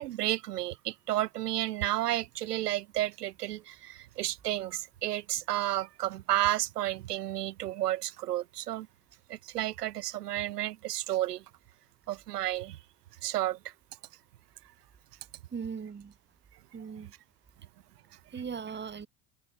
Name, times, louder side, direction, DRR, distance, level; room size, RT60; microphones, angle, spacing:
voice 1, 0.0-8.9 9.3-11.4 12.1-12.8 13.2-13.6, right 14 dB, 80° right, 2.6 m, -32 dB
voice 2, 15.5-16.1 16.7-17.1 18.3-19.1, right 6 dB, 25° right, 3.5 m, -38 dB
hypercardioid pair, 90°, 46 cm